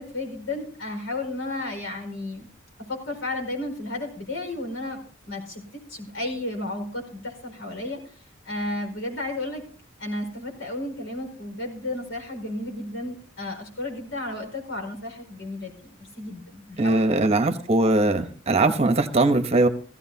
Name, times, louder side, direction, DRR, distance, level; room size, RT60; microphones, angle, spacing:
voice 1, 0.0-2.5 2.9-5.0 5.3-8.0 8.4-9.6 10.0-17.3, left 1 dB, 85° left, 2 dB, 5.0 m, -33 dB
voice 2, 16.8-19.7, right 2 dB, 35° right, 8 dB, 1.0 m, -21 dB
16.5 x 16.0 x 2.8 m, 0.41 s
head